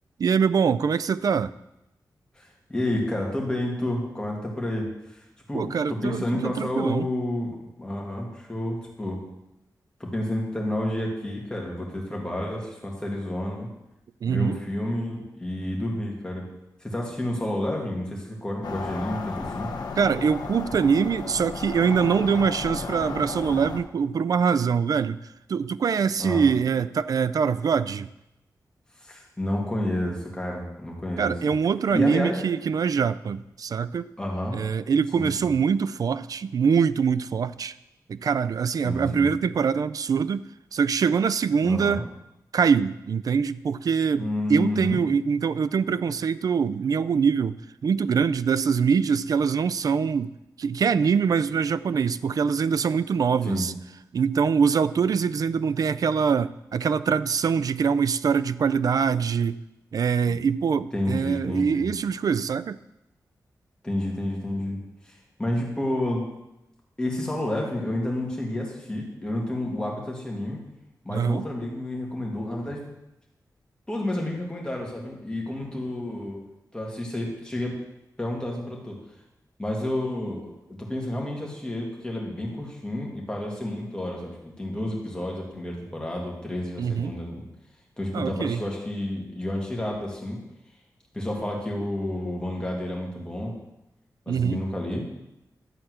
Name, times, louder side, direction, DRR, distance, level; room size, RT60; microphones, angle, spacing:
voice 1, 0.2-1.5 5.5-7.1 14.2-14.6 20.0-25.2 25.5-28.1 31.2-34.0 34.5-37.7 38.1-40.4 40.7-42.0 42.5-50.3 50.6-53.7 54.1-59.6 59.9-62.8 71.1-71.5 86.8-87.1 88.1-88.6 94.3-94.6, right 6 dB, 60° right, 15 dB, 0.3 m, -24 dB
voice 2, 2.4-5.2 5.5-9.2 10.0-13.7 14.3-16.5 16.8-19.7 26.2-26.5 29.0-31.3 31.9-32.4 34.2-34.6 35.2-35.5 38.8-39.3 41.6-42.0 44.2-45.0 53.5-53.7 60.3-60.4 60.9-61.9 63.8-64.8 65.1-66.3 67.0-70.6 71.0-72.8 73.9-76.4 76.7-77.8 78.2-79.0 79.6-80.5 80.8-87.4 88.0-90.4 91.1-93.5 94.3-95.1, left 1 dB, 10° left, -2 dB, 2.2 m, -30 dB
sound 1, 18.6-23.8, left 4 dB, 80° left, 1.0 m, -34 dB
11.5 x 4.3 x 7.7 m, 0.89 s
wide cardioid pair, 145°, 7 cm